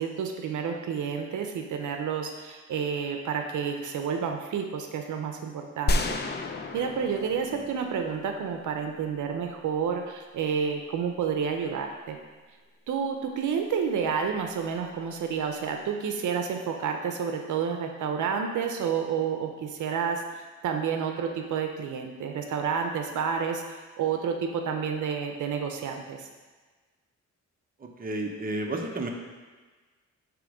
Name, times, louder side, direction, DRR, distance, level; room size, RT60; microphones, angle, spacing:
voice 1, 0.0-6.0 6.7-12.2 12.9-23.6 24.0-26.3, right 6 dB, 80° right, 4 dB, 0.7 m, -30 dB
sound 1, 5.9-8.8, left 2 dB, 35° left, 0.5 m, -31 dB
voice 2, 27.8-29.1, right 2 dB, 30° right, 1 dB, 0.9 m, -32 dB
8.7 x 3.1 x 5.0 m, 1.4 s
cardioid pair, 105°, 30 cm